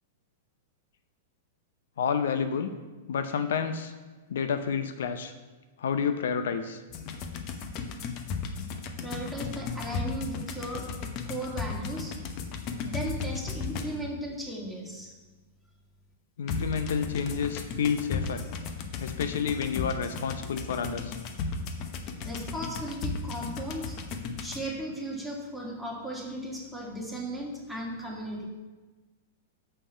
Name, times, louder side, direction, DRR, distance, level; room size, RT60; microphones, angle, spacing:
voice 1, 2.0-2.7 3.1-3.9 4.3-5.3 5.8-6.8 16.4-18.4 19.0-21.1, left 6 dB, 70° left, 9 dB, 0.6 m, -29 dB
sound 1, 6.9-14.2 16.5-24.6, left 4 dB, 45° left, 1.0 m, -35 dB
voice 2, 9.0-10.9 11.2-12.2 12.8-15.1 22.2-24.0 24.4-28.5, right 1 dB, ahead, -3 dB, 2.1 m, -36 dB
6.6 x 5.4 x 6.8 m, 1.3 s
hypercardioid pair, 105°, 0 cm